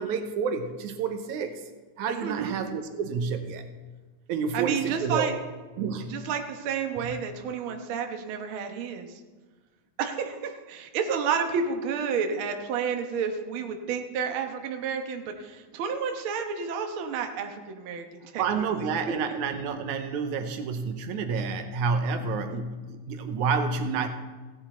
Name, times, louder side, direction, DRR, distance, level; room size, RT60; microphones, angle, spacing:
voice 1, 0.0-1.6 2.0-3.6 4.3-5.4 5.8-6.2 7.0-7.2 18.4-24.1, right 5 dB, 80° right, 7 dB, 2.3 m, -29 dB
voice 2, 2.2-2.5 4.5-5.4 6.1-9.2 10.0-18.9 22.2-22.6, right 6 dB, 55° right, 5 dB, 1.6 m, -31 dB
16.0 x 9.6 x 4.3 m, 1.3 s
omnidirectional pair, 3.4 m